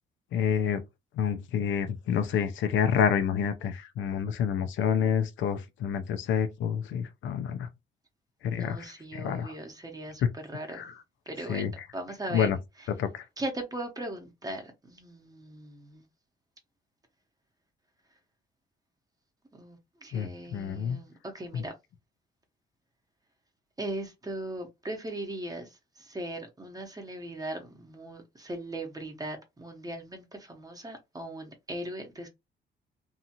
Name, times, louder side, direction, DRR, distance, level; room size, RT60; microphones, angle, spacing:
voice 1, 0.3-0.8 1.1-7.7 8.4-9.5 10.2-10.3 10.7-10.9 11.5-11.9 12.3-12.6 13.0-13.2 20.1-21.0 21.5-21.6, left 7 dB, 75° left, 0.5 m, -28 dB
voice 2, 8.5-10.9 11.3-11.6 11.9-12.5 13.4-16.1 19.5-21.7 23.8-32.3, right 1 dB, 20° right, 0.8 m, -39 dB
2.7 x 2.4 x 2.8 m
cardioid pair, 90°, 20 cm